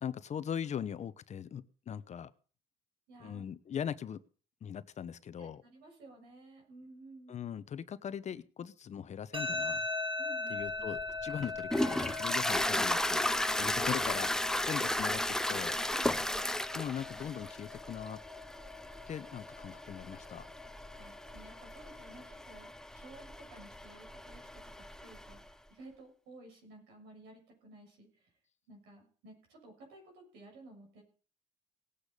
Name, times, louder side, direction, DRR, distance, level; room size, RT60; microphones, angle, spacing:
voice 1, 0.0-2.3 3.2-4.2 4.6-5.6 7.3-9.9 10.5-13.2 13.6-15.8 16.7-18.2 19.1-20.5, left 8 dB, 40° left, 14 dB, 0.9 m, -40 dB
voice 2, 3.1-3.4 5.4-7.4 10.2-10.9 13.6-13.7 15.9-16.6 21.0-28.3 28.7-31.0, right 2 dB, 90° right, 2 dB, 7.3 m, -55 dB
sound 1, 9.3-22.3, left 3 dB, 30° right, 3.0 m, -41 dB
Toilet flush, 10.7-25.4, left 1 dB, 5° left, 0.6 m, -35 dB
18.5 x 8.4 x 5.2 m, 0.40 s
cardioid pair, 110°, 17 cm